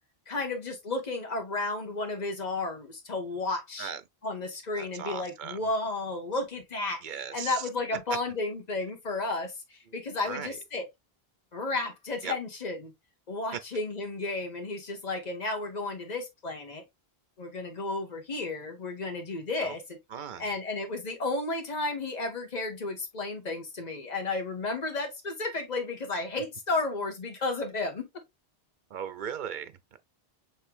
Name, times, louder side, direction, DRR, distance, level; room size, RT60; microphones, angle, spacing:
voice 1, 0.3-3.9 4.2-10.9 11.5-12.9 13.3-16.8 17.4-20.0 20.4-28.1, left 2 dB, 45° left, 1.4 m, -33 dB
voice 2, 4.8-5.6 7.0-7.7 10.2-10.6 12.2-12.3 13.5-13.6 19.6-19.7 20.1-20.5 28.9-29.8, right 8 dB, 55° right, 0.8 m, -37 dB
6.4 x 3.2 x 2.4 m
omnidirectional pair, 1.0 m